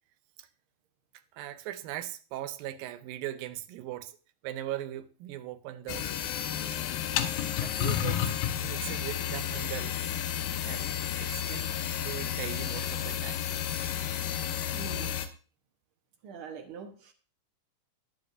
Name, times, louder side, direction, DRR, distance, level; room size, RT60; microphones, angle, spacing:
voice 1, 1.3-4.2 4.4-6.3 7.6-8.3 8.6-10.1 10.6-10.9 11.2-13.4, right 13 dB, 85° right, 2.5 m, -39 dB
sound 1, 5.9-15.3, left 10 dB, 85° left, 2.6 m, -32 dB
voice 2, 14.7-15.2 16.2-17.1, right 7 dB, 65° right, 1.3 m, -43 dB
21.0 x 7.9 x 2.6 m
omnidirectional pair, 4.0 m